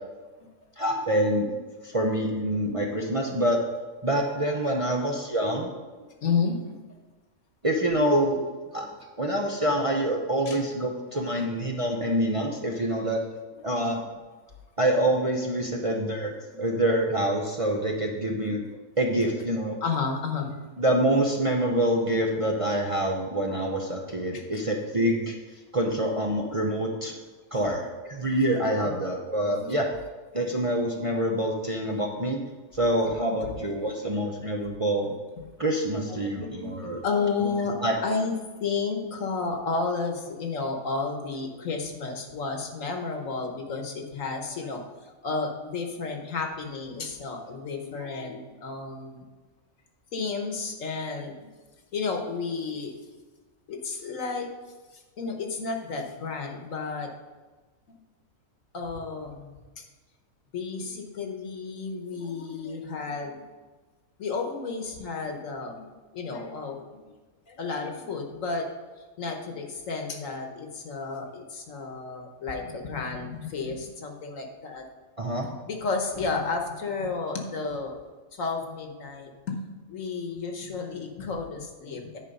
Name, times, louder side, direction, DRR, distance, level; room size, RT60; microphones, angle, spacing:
voice 1, 0.8-1.5 1.8-3.6 4.0-5.7 7.6-8.4 8.7-8.9 9.2-13.2 13.6-14.0 14.8-18.6 19.0-19.8 20.8-25.3 25.7-27.1 27.5-29.9 30.3-32.4 32.7-35.1 35.6-37.0 37.4-37.5 37.8-37.9 75.2-75.5, right 1 dB, 30° right, 0 dB, 0.7 m, -26 dB
voice 2, 6.2-6.7 7.8-7.9 10.5-10.6 11.1-11.4 13.6-13.7 15.7-15.8 16.5-16.7 18.4-18.5 19.8-20.7 24.3-24.6 29.4-29.7 33.5-33.6 36.1-49.3 50.1-51.3 51.9-52.9 53.7-54.5 54.9-57.1 57.9-58.0 58.7-59.8 60.5-63.4 64.2-67.1 67.5-68.7 69.2-74.8 75.4-77.9 78.4-79.6 79.9-82.2, left 4 dB, 70° left, 3 dB, 1.5 m, -32 dB
10.0 x 5.0 x 5.4 m, 1.3 s
omnidirectional pair, 1.4 m